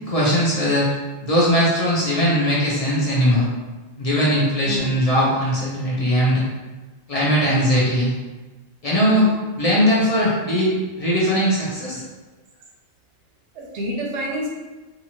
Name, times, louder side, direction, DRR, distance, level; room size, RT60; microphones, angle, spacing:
voice 1, 0.0-0.9 1.2-3.5 4.0-6.4 7.1-8.1 8.8-9.3 9.6-12.0, equal, 45° left, -6 dB, 0.5 m, -19 dB
voice 2, 8.9-9.3 13.5-14.5, equal, 70° right, -2 dB, 0.9 m, -28 dB
2.8 x 2.4 x 2.8 m, 1.2 s
omnidirectional pair, 1.3 m